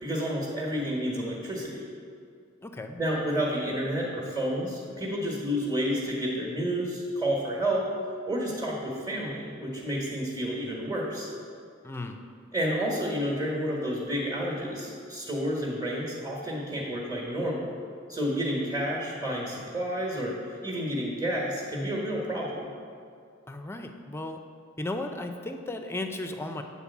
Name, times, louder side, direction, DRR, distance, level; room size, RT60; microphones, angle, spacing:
voice 1, 0.0-1.9 3.0-7.9 8.3-11.3 12.5-17.7 18.1-20.3 20.6-22.7, equal, 15° right, -4 dB, 1.3 m, -30 dB
voice 2, 2.6-3.0 11.8-12.2 23.5-24.4 24.8-26.6, left 2 dB, 10° left, 5 dB, 0.5 m, -35 dB
8.9 x 4.2 x 7.1 m, 2.4 s
head